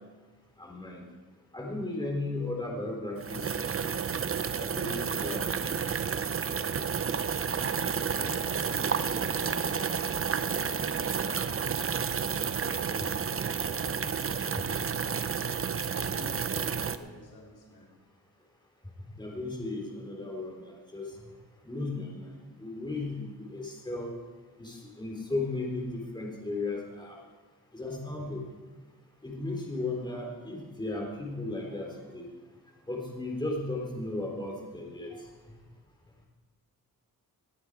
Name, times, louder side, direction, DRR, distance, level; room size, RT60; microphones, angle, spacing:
voice 1, 0.6-1.0 1.5-4.0 4.6-5.9 19.1-21.1 21.6-22.3 22.6-24.1 24.6-27.2 27.7-28.4 29.2-32.3 32.9-35.2, left 2 dB, 10° left, -1 dB, 3.7 m, -35 dB
sound 1, 3.2-17.0, right 6 dB, 35° right, 0.7 m, -31 dB
voice 2, 7.4-10.4 10.8-11.4 12.0-15.3 16.0-18.0, left 2 dB, 80° left, -3 dB, 3.9 m, -49 dB
19.0 x 9.7 x 4.8 m, 1.3 s
cardioid pair, 95°, 38 cm